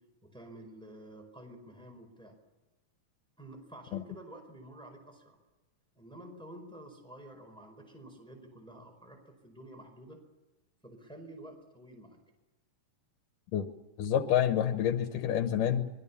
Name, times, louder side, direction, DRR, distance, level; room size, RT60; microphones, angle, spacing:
voice 1, 0.2-2.3 3.4-5.4 5.9-10.2 10.8-12.2, right 1 dB, ahead, 4 dB, 4.5 m, -50 dB
voice 2, 14.0-15.9, left 10 dB, 85° left, 7 dB, 2.8 m, -28 dB
25.5 x 22.0 x 7.2 m, 1.1 s
omnidirectional pair, 3.7 m